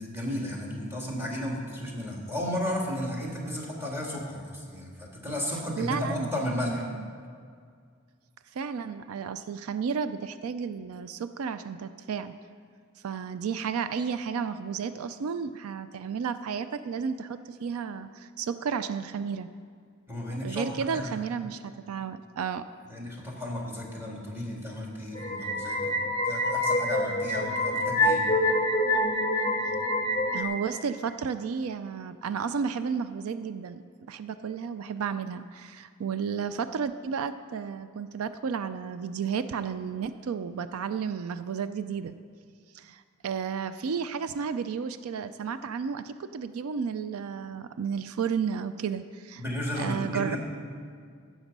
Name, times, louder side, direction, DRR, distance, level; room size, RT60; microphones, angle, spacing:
voice 1, 0.0-6.8 20.1-20.6 20.9-21.2 22.9-26.0 26.2-28.2 49.4-50.4, left 1 dB, 10° right, -2 dB, 2.0 m, -33 dB
voice 2, 5.8-6.3 6.7-7.1 8.5-12.3 13.0-19.5 20.4-22.7 30.3-42.1 42.7-49.4 49.8-50.4, right 6 dB, 90° right, 12 dB, 0.4 m, -32 dB
sound 1, 25.2-30.4, left 1 dB, 20° left, 0.8 m, -26 dB
15.0 x 6.3 x 5.3 m, 2.1 s
head